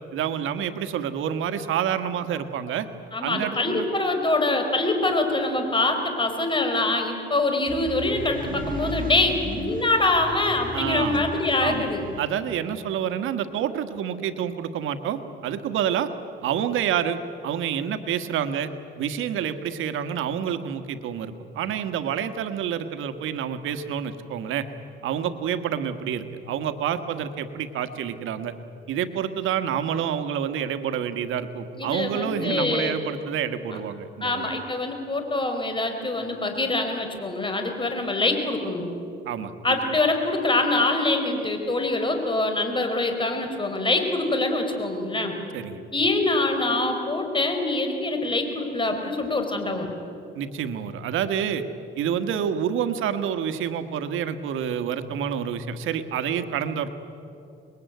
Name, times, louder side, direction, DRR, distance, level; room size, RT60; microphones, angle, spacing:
voice 1, 0.1-2.9 3.2-3.9 10.7-11.3 11.6-11.9 12.2-16.1 16.4-18.7 19.0-24.7 25.0-28.5 28.9-34.5 39.2-39.5 45.5-45.9 50.3-51.6 52.0-56.9, right 8 dB, 85° right, 9 dB, 1.5 m, -28 dB
voice 2, 3.1-12.0 31.7-33.0 34.2-38.8 39.6-45.4 45.9-49.9, left 2 dB, 25° left, 5 dB, 4.7 m, -24 dB
sound 1, 7.7-12.3, right 2 dB, 45° right, 2.2 m, -36 dB
26.5 x 21.5 x 9.4 m, 2.7 s
cardioid pair, 90°, 20 cm